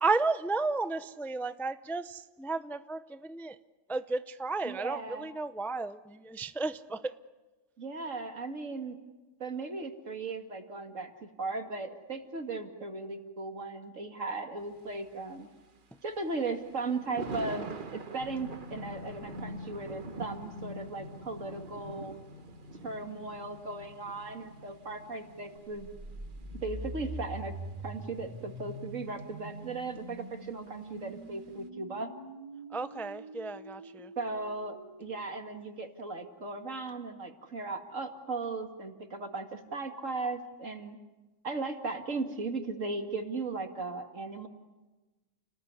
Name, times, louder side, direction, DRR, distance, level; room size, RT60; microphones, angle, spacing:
voice 1, 0.0-3.6 3.9-7.2 32.7-34.1, right 3 dB, ahead, 11 dB, 0.5 m, -33 dB
voice 2, 4.6-5.3 7.8-9.0 9.4-15.5 16.0-22.1 22.8-25.9 26.6-27.5 27.8-32.1 34.2-41.0 41.4-44.5, right 3 dB, 75° right, 5 dB, 2.6 m, -37 dB
Thunder, 14.6-31.7, right 4 dB, 40° right, 1.3 m, -48 dB
sound 1, 18.2-28.9 29.2-29.5 29.9-30.0, left 3 dB, 50° left, 1.9 m, -48 dB
sound 2, 25.6-35.6, right 1 dB, 25° right, 2.6 m, -44 dB
30.0 x 20.0 x 9.7 m, 1.2 s
omnidirectional pair, 1.3 m